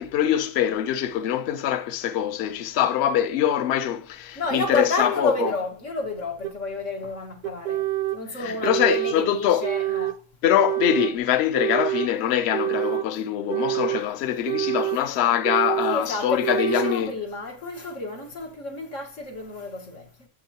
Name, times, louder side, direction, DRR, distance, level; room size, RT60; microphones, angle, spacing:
voice 1, 0.0-5.5 8.4-9.7 10.4-17.1, left 10 dB, 60° left, 0.9 m, -23 dB
voice 2, 4.4-7.8 8.1-10.2 15.9-20.3, left 2 dB, 85° left, 2.2 m, -30 dB
sound 1, 5.4-5.5 6.4-6.5 7.4-8.2 8.6-9.2 9.6-10.2 10.6-11.1 11.6-12.1 12.5-13.1 13.5-14.1 14.5-15.0 15.4-16.0 16.4-17.0, right 15 dB, 50° right, 0.6 m, -26 dB
7.5 x 6.4 x 2.9 m
omnidirectional pair, 1.3 m